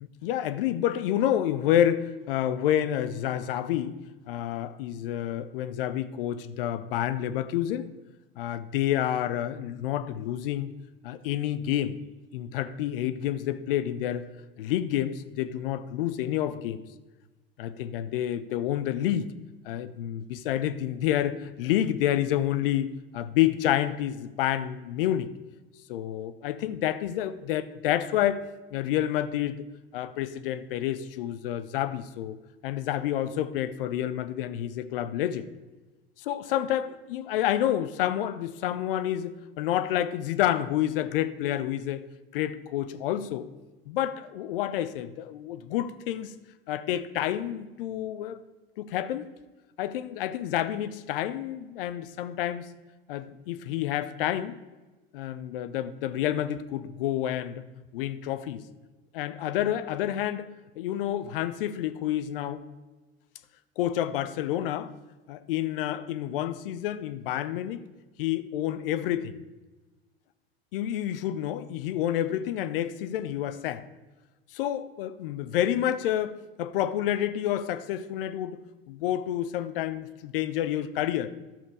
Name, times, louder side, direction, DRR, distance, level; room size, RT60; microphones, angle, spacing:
voice 1, 0.2-3.9 4.3-7.9 8.4-10.7 11.0-12.0 12.3-14.3 14.6-16.8 17.6-19.3 19.6-25.3 25.9-28.4 28.7-29.7 29.9-32.4 32.6-35.5 36.3-42.0 42.3-43.5 43.9-46.3 46.7-48.4 48.8-49.3 49.8-52.7 53.1-54.6 55.1-57.6 57.9-58.6 59.1-60.5 60.8-62.6 63.8-64.9 65.3-67.8 68.2-69.4 70.7-73.8 74.5-78.6 78.9-81.3, left 11 dB, 60° left, 0.7 m, -29 dB
12.0 x 6.7 x 4.9 m
figure-of-eight pair, 80°, 31 cm